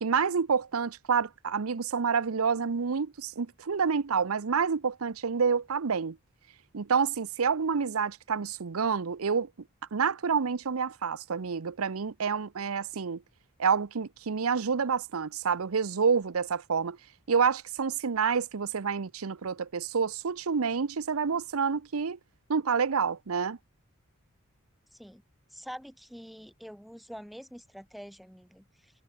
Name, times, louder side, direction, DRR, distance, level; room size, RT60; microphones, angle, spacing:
voice 1, 0.0-6.2 6.7-9.5 9.9-13.2 13.6-17.0 17.3-22.2 22.5-23.6, right 6 dB, 90° right, 0.7 m, -28 dB
voice 2, 24.9-25.2 25.5-28.9, equal, ahead, 7.8 m, -46 dB
head